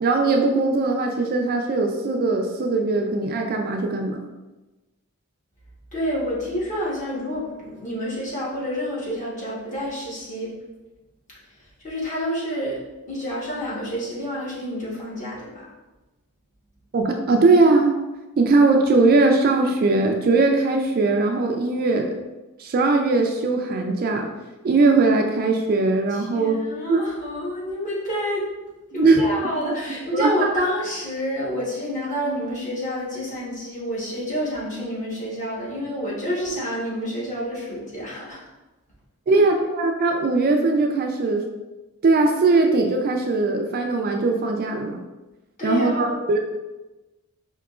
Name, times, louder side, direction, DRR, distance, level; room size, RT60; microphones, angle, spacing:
voice 1, 0.0-4.2 16.9-18.0 18.4-22.2 22.6-24.3 24.6-26.6 26.9-27.0 28.9-29.2 29.6-29.7 30.1-30.5 39.3-41.4 42.0-45.0 45.6-46.4, right 3 dB, 45° right, 3 dB, 0.3 m, -20 dB
voice 2, 5.9-10.5 11.8-12.8 13.1-15.7 26.1-28.5 28.9-38.4 39.3-39.5 45.6-46.2, equal, 35° left, -6 dB, 1.1 m, -28 dB
4.7 x 2.9 x 2.3 m, 1.1 s
head